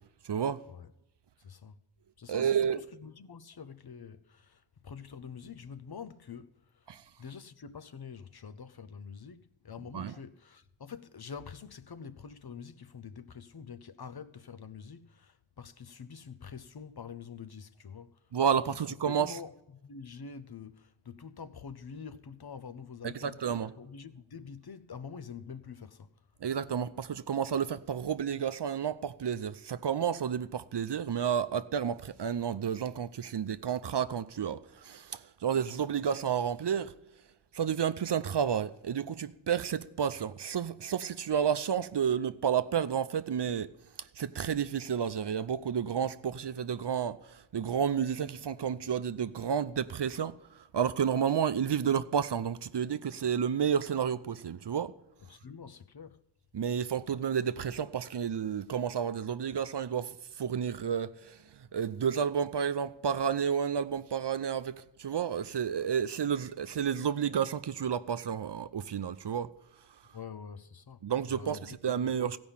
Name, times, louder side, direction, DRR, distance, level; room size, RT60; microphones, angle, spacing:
voice 1, 0.2-0.6 2.3-2.8 6.9-7.0 9.9-10.1 18.3-19.3 23.0-23.7 26.4-36.9 37.5-43.7 44.0-54.9 56.5-69.5 71.0-72.4, right 8 dB, 60° right, 0.6 m, -31 dB
voice 2, 1.4-1.8 2.2-6.9 7.2-18.2 18.7-18.8 19.0-19.5 19.8-23.5 23.8-26.3 55.3-56.2 70.1-71.6 71.9-72.3, left 6 dB, 50° left, 0.7 m, -46 dB
16.0 x 5.3 x 7.2 m
wide cardioid pair, 60°, 47 cm